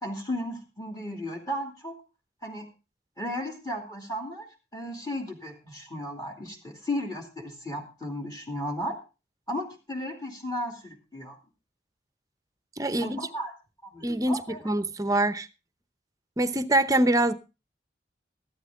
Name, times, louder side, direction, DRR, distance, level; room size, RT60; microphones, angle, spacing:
voice 1, 0.0-1.9 2.4-2.7 3.2-4.5 4.7-9.0 9.5-11.4 13.0-13.5 13.8-14.6, equal, 20° left, 1 dB, 2.6 m, -34 dB
voice 2, 12.8-13.3 14.0-15.5 16.4-17.3, right 1 dB, 20° right, 12 dB, 0.8 m, -24 dB
14.0 x 12.0 x 3.6 m, 0.30 s
head